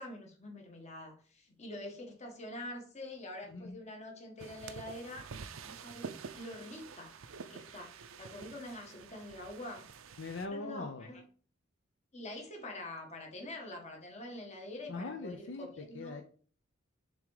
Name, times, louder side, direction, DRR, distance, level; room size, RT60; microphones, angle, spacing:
voice 1, 0.0-5.3 5.6-9.9 10.5-11.2 12.1-16.2, left 1 dB, 35° left, 2 dB, 1.6 m, -46 dB
voice 2, 3.5-3.8 10.2-11.1 14.9-16.2, left 3 dB, 65° left, 5 dB, 0.7 m, -41 dB
sound 1, 4.4-10.5, right 5 dB, 90° right, 0.6 m, -48 dB
7.1 x 3.7 x 4.9 m, 0.43 s
head